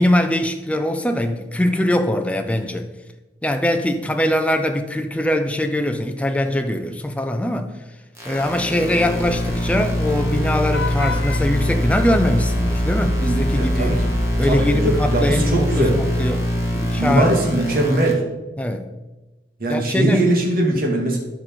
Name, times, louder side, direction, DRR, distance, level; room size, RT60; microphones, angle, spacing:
voice 1, 0.0-2.9 3.4-7.7 8.2-14.0 14.4-16.5 16.7-17.3 18.6-18.9 19.7-20.2, left 1 dB, 5° left, 0.5 m, -22 dB
sound 1, 8.2-18.1, equal, 15° right, 1.7 m, -23 dB
Vehicle horn car horn honking / Traffic noise roadway noise, 9.0-14.4, left 2 dB, 75° left, 0.7 m, -33 dB
voice 2, 13.3-14.1 14.4-16.0 17.0-18.2 19.6-21.2, right 1 dB, 55° right, 2.1 m, -20 dB
12.5 x 5.1 x 4.5 m
head